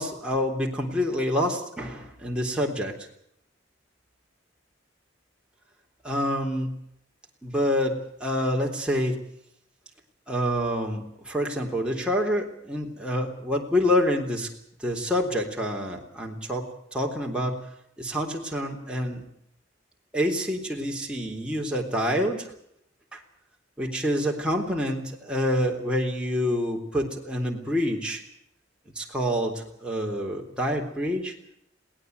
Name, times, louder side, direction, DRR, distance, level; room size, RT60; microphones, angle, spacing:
voice 1, 0.0-2.9 6.0-6.7 7.4-9.2 10.3-14.5 14.8-17.6 18.0-19.2 20.1-22.5 23.1-23.2 23.8-28.2 29.0-31.3, equal, 5° right, -1 dB, 3.5 m, -27 dB
22.0 x 18.0 x 8.1 m, 0.73 s
head